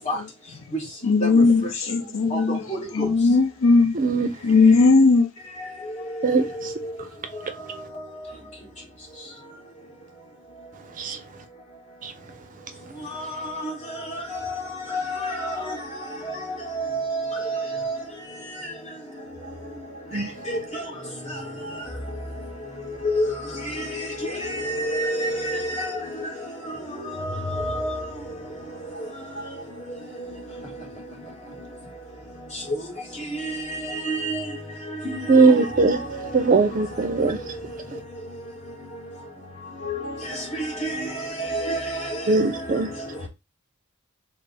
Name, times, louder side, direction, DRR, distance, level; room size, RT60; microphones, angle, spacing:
voice 1, 1.0-2.6 2.9-4.0 4.4-5.3, left 3 dB, 70° left, 0.5 m, -17 dB
voice 2, 2.3-3.1 13.1-13.7 14.1-14.5 14.9-15.8 16.3-16.4 16.7-18.0 20.5-20.8 23.0-26.3 26.7-28.1 29.9-30.3 33.4-34.4 34.9-36.3 39.8-40.1 40.5-42.5, equal, 35° left, 1.6 m, -29 dB
voice 3, 3.9-4.3 6.2-6.7 11.0-11.2 12.0-12.1 20.1-20.3 35.3-36.0 36.3-37.4 37.9-38.0 42.3-42.9, right 4 dB, 40° right, 0.5 m, -20 dB
3.4 x 2.0 x 3.8 m
head